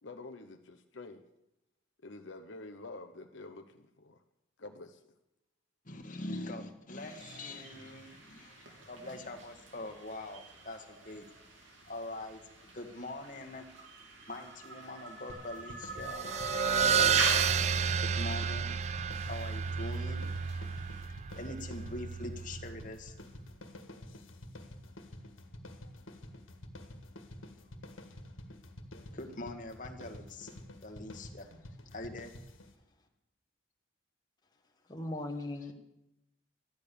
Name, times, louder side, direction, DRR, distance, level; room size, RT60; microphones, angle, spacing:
voice 1, 0.0-1.2 2.0-4.2 4.6-5.0, left 2 dB, 70° left, 6 dB, 0.9 m, -48 dB
voice 2, 5.8-11.3 11.9-13.6 14.3-16.4 16.7-17.7 18.0-18.7 19.3-20.3 21.1-23.1 25.8-25.9 29.1-30.5 30.8-31.5 31.9-32.4, left 2 dB, 40° left, 4 dB, 1.6 m, -43 dB
sound 1, 7.0-21.0, right 2 dB, 75° right, 3.1 m, -43 dB
sound 2, 15.3-32.7, left 1 dB, 90° left, 1.8 m, -49 dB
sound 3, 16.0-23.0, right 7 dB, 35° right, 0.4 m, -31 dB
voice 3, 34.8-35.7, left 1 dB, 20° left, 2 dB, 1.3 m, -38 dB
13.5 x 10.5 x 6.9 m, 0.87 s
head